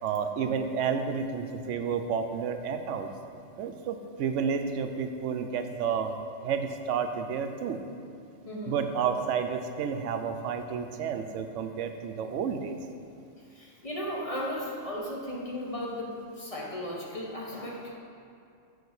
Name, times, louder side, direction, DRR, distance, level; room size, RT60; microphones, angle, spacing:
voice 1, 0.0-3.1 3.6-6.2 6.4-7.8 8.7-12.8, right 6 dB, 90° right, 7 dB, 0.9 m, -31 dB
voice 2, 8.4-8.8 13.5-18.0, left 1 dB, 30° left, -3 dB, 1.0 m, -36 dB
7.0 x 4.5 x 6.4 m, 2.5 s
omnidirectional pair, 1.2 m